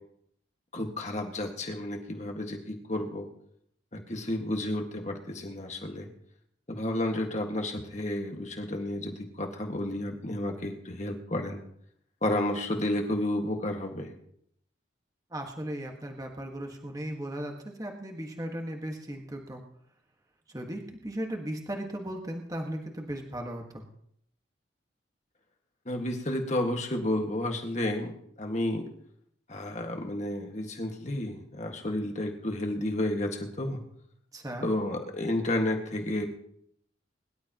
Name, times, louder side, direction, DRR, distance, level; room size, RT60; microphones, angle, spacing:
voice 1, 0.7-3.3 3.9-6.1 6.7-11.6 12.2-14.1 25.9-28.9 29.5-33.8 34.6-36.3, left 1 dB, 35° left, 3 dB, 1.7 m, -31 dB
voice 2, 15.3-19.6 20.5-23.8 34.3-34.7, right 1 dB, 20° right, 2 dB, 1.5 m, -37 dB
22.5 x 12.0 x 3.0 m, 0.70 s
head